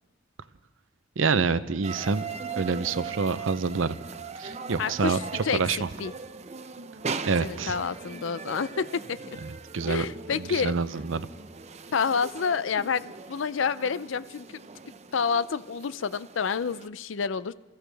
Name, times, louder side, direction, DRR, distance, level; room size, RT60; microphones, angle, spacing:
voice 1, 1.2-2.2 2.6-4.0 4.3-5.2 5.5-5.9 7.3-7.7 9.5-10.0 10.4-11.3, right 4 dB, 90° right, 14 dB, 0.6 m, -27 dB
sound 1, 1.8-16.9, right 5 dB, 35° right, 0.6 m, -40 dB
voice 2, 4.8-5.6 6.0-6.1 7.4-9.2 9.9-10.7 11.9-14.6 15.1-17.5, left 6 dB, 75° left, 16 dB, 0.5 m, -28 dB
28.0 x 15.0 x 3.4 m, 1.1 s
head